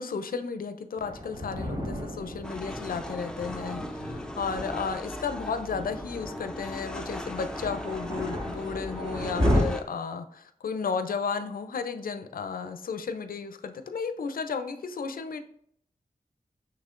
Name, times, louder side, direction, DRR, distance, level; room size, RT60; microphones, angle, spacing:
voice 1, 0.0-15.4, left 5 dB, 80° left, 9 dB, 0.4 m, -33 dB
Thunder, 1.0-9.6, equal, 30° right, 1.5 m, -33 dB
sound 1, 2.4-9.8, left 1 dB, 5° left, 0.5 m, -38 dB
5.6 x 3.3 x 2.5 m, 0.66 s
wide cardioid pair, 70°, 15 cm